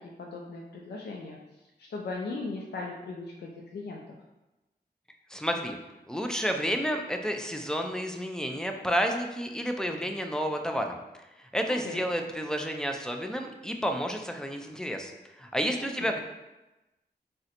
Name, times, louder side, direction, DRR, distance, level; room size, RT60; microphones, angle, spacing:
voice 1, 0.2-1.4 1.9-4.0 11.8-12.0 16.0-16.1, left 3 dB, 70° left, -1 dB, 0.4 m, -37 dB
voice 2, 5.3-5.8 6.1-11.0 11.5-15.1 15.4-16.2, equal, 5° left, 4 dB, 0.3 m, -30 dB
3.6 x 2.1 x 2.8 m, 1.0 s
cardioid pair, 60°, 18 cm